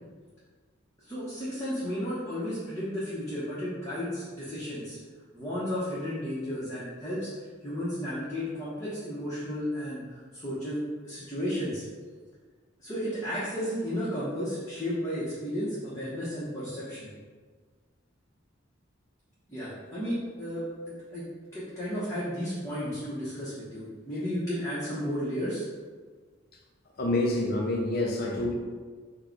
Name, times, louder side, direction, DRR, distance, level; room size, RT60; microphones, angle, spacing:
voice 1, 1.0-5.0 5.3-7.3 7.6-11.8 12.8-17.1 19.5-21.2 21.5-25.6, equal, 15° left, -11 dB, 1.0 m, -33 dB
voice 2, 27.0-28.5, left 1 dB, 50° left, -1 dB, 0.6 m, -27 dB
4.6 x 2.3 x 4.5 m, 1.5 s
head